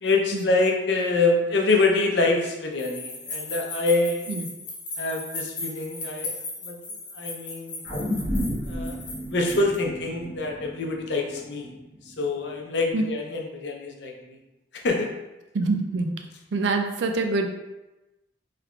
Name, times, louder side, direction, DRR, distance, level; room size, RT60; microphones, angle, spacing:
voice 1, 0.0-4.3 5.0-6.3 6.6-6.8 7.2-7.8 8.7-9.0 9.3-11.7 12.2-14.4 14.8-15.1, left 3 dB, 75° left, 1 dB, 0.6 m, -25 dB
sound 1, 2.8-9.8, left 2 dB, 45° left, 1.0 m, -36 dB
sound 2, 7.8-12.3 12.8-12.9, equal, 5° right, 1.2 m, -32 dB
voice 2, 15.5-16.1 16.5-17.5, right 3 dB, 80° right, 5 dB, 0.4 m, -25 dB
3.6 x 3.2 x 2.3 m, 1.0 s
head